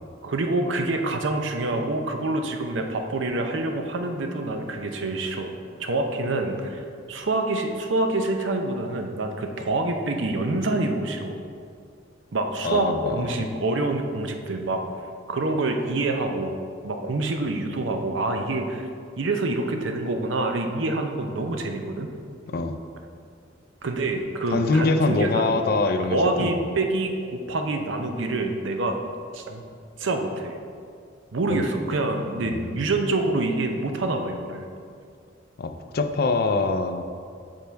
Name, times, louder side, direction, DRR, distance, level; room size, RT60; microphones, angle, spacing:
voice 1, 0.2-5.5 5.8-11.4 12.3-14.8 15.3-16.5 16.8-18.9 19.2-22.1 23.8-25.6 26.1-29.0 29.3-29.6 30.0-30.6 31.3-34.7, right 2 dB, 75° right, 4 dB, 0.6 m, -26 dB
voice 2, 12.6-13.5 22.5-22.8 24.5-26.5 31.5-31.6 32.4-32.9 35.6-37.0, left 3 dB, 50° left, 8 dB, 0.4 m, -24 dB
5.5 x 5.2 x 4.5 m, 2.3 s
head